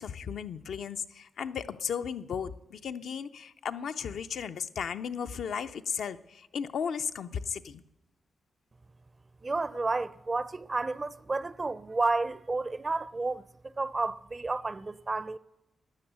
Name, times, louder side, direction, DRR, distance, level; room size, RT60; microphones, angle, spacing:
voice 1, 0.0-7.8, left 7 dB, 80° left, 0.5 m, -35 dB
voice 2, 9.4-13.4 13.8-15.4, right 3 dB, 35° right, 0.5 m, -31 dB
13.0 x 9.4 x 8.0 m
cardioid pair, 75°, 0 cm